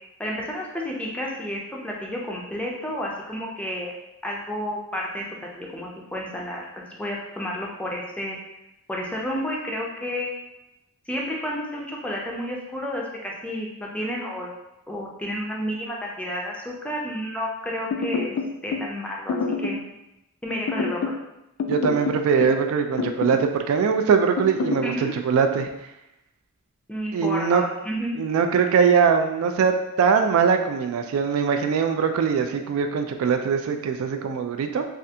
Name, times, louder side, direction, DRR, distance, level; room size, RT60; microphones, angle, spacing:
voice 1, 0.2-3.9 4.2-5.2 5.5-8.4 8.9-10.3 11.1-14.5 14.9-18.3 18.6-19.9 20.4-21.1 24.8-25.1 26.9-28.2, equal, 5° left, -2 dB, 0.4 m, -31 dB
sound 1, 17.9-18.9 19.3-19.9 20.7-21.2 21.6-22.6 23.0-23.5 24.4-24.9, left 4 dB, 70° left, 0.3 m, -27 dB
voice 2, 21.7-25.7 27.1-27.6 28.2-34.9, right 6 dB, 70° right, 6 dB, 0.3 m, -22 dB
3.3 x 2.4 x 2.7 m, 0.90 s
head